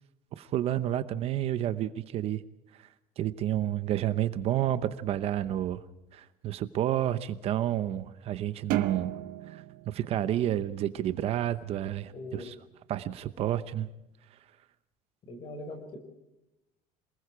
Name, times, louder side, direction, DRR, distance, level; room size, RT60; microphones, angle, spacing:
voice 1, 0.4-2.4 2.8-2.9 3.2-5.8 6.1-9.1 9.5-12.5 12.9-13.9, right 12 dB, 40° right, 13 dB, 0.9 m, -30 dB
sound 1, 8.7-11.3, right 15 dB, 70° right, 1.2 m, -35 dB
voice 2, 12.1-12.5 15.3-16.0, left 2 dB, 35° left, 7 dB, 5.4 m, -41 dB
27.5 x 20.0 x 4.8 m, 0.93 s
cardioid pair, 175°, 15 cm